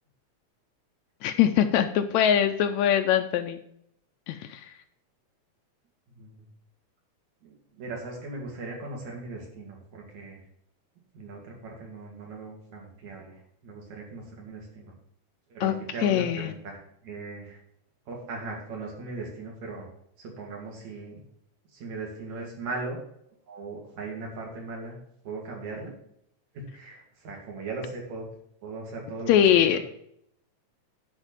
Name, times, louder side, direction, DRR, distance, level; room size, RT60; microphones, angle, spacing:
voice 1, 1.2-3.6 4.3-4.7 15.6-15.7 16.0-16.5 29.3-29.8, left 9 dB, 80° left, 8 dB, 1.8 m, -22 dB
voice 2, 6.1-6.5 7.4-10.4 11.1-14.9 15.5-17.6 18.1-19.9 20.2-21.2 21.7-23.0 23.5-25.0 25.2-25.9 26.5-28.3 28.6-29.8, right 3 dB, 70° right, -1 dB, 3.7 m, -39 dB
9.9 x 4.3 x 7.3 m, 0.71 s
omnidirectional pair, 3.4 m